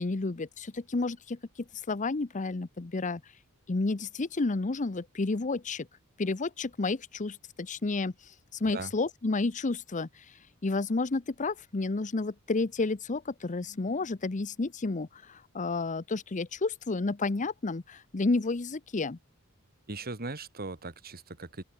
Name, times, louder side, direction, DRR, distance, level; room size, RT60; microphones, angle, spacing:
voice 1, 0.0-1.4 1.9-3.2 3.7-5.9 6.2-19.2, left 3 dB, 35° left, 0.7 m, -31 dB
voice 2, 19.9-21.6, right 3 dB, 45° right, 2.5 m, -39 dB
open air
head